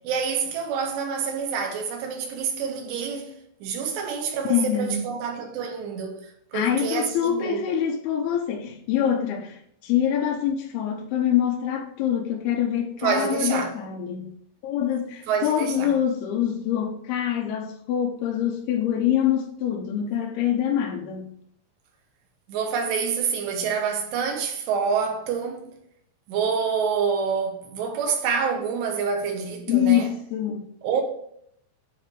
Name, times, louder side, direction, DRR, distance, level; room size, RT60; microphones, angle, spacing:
voice 1, 0.0-6.2 6.5-7.6 13.0-13.7 15.3-16.0 22.5-25.7 26.3-30.1 30.8-31.0, right 6 dB, 80° right, 3.3 m, -27 dB
voice 2, 4.5-5.0 6.5-14.3 14.6-21.3 29.7-30.7, left 10 dB, 75° left, 2.7 m, -25 dB
9.3 x 3.9 x 4.8 m
omnidirectional pair, 5.0 m